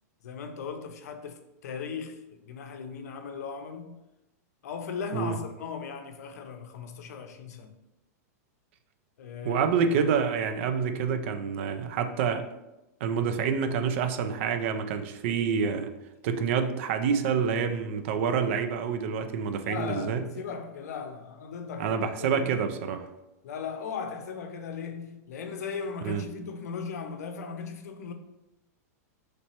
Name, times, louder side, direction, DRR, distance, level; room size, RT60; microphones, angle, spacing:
voice 1, 0.2-4.0 4.6-7.7 9.2-9.6 19.6-22.5 23.4-28.1, left 6 dB, 75° left, 0.6 m, -37 dB
voice 2, 9.4-12.5 13.0-15.9 16.2-20.2 21.8-23.1 26.0-26.2, right 6 dB, 50° right, 0.4 m, -27 dB
3.3 x 3.0 x 4.3 m
supercardioid pair, 160°, 9 cm